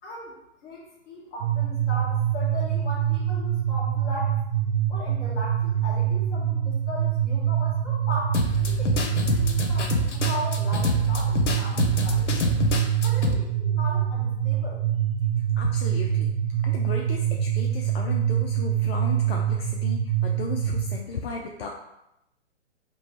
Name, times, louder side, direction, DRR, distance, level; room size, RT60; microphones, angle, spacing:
voice 1, 0.0-4.3 4.9-12.6 13.0-14.8, left 1 dB, 25° left, -6 dB, 1.4 m, -38 dB
sound 1, 1.4-21.0, right 10 dB, 40° right, 0.6 m, -25 dB
sound 2, 8.3-13.3, left 3 dB, 90° left, 0.8 m, -26 dB
voice 2, 15.6-16.3 16.6-21.7, left 4 dB, 60° left, 1 dB, 0.5 m, -35 dB
3.1 x 3.0 x 4.3 m, 0.85 s
hypercardioid pair, 140°, 35 cm